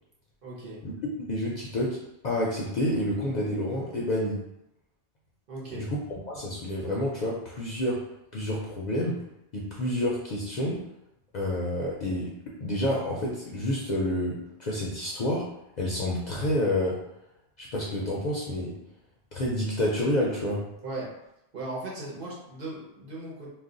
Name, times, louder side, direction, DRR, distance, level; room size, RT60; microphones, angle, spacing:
voice 1, 0.4-0.8 5.5-5.9 20.8-21.1 21.5-23.5, right 2 dB, 60° right, -4 dB, 1.0 m, -37 dB
voice 2, 1.3-4.4 5.7-5.9 6.3-8.0 8.3-9.2 9.5-10.8 11.3-12.3 12.6-15.5 15.8-17.0 17.6-18.7 19.3-20.6, left 1 dB, 55° left, -4 dB, 0.6 m, -29 dB
2.3 x 2.2 x 3.7 m, 0.87 s
omnidirectional pair, 1.0 m